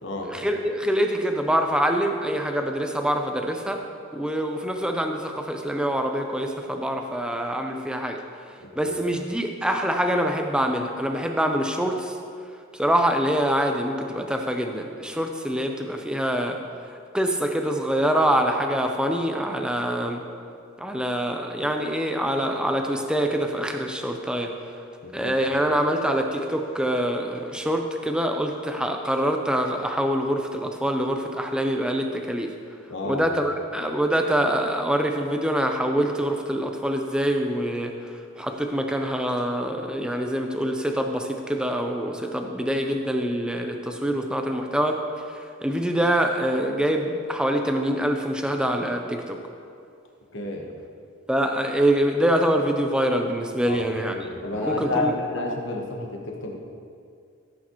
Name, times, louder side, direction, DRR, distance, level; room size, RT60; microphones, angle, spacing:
voice 1, 0.2-3.8 4.1-8.2 8.8-12.1 12.8-16.6 17.1-20.2 20.8-24.5 25.1-32.5 33.0-37.9 38.4-45.0 45.6-49.4 51.3-54.3 54.5-55.1, equal, 5° right, 3 dB, 0.6 m, -25 dB
voice 2, 25.0-25.4 32.9-33.2 50.3-50.7 53.6-53.8 54.1-56.6, left 2 dB, 60° left, 0 dB, 1.3 m, -30 dB
15.5 x 8.3 x 3.1 m, 2.3 s
head